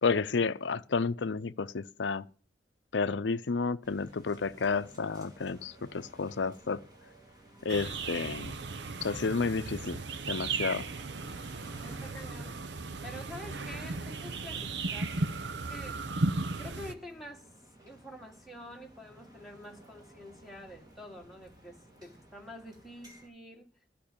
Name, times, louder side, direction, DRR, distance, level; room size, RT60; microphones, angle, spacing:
voice 1, 0.0-2.3 2.9-6.8 7.6-8.6 9.0-10.0 10.3-10.8, left 4 dB, 85° left, 0.6 m, -31 dB
sound 1, 3.8-23.3, right 1 dB, 20° right, 2.7 m, -56 dB
sound 2, 7.7-16.9, right 3 dB, 75° right, 0.8 m, -36 dB
voice 2, 11.8-12.6 13.0-16.0 16.6-17.5 17.8-23.7, left 1 dB, ahead, 1.9 m, -47 dB
13.5 x 5.5 x 8.6 m
head